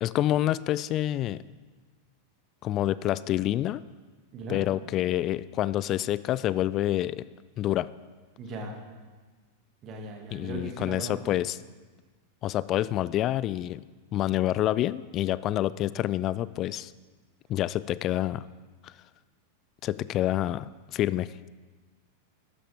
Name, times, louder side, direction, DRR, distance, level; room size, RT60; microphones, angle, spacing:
voice 1, 0.0-1.4 2.6-3.8 4.5-7.3 7.6-7.9 10.3-11.6 12.4-13.8 14.1-16.9 17.5-18.5 18.8-18.9 19.8-21.3, left 13 dB, 35° left, 18 dB, 0.3 m, -27 dB
voice 2, 8.4-8.8 9.8-11.3, right 2 dB, 35° right, 1 dB, 2.1 m, -38 dB
14.5 x 11.5 x 3.6 m, 1.4 s
figure-of-eight pair, 90°, 0 cm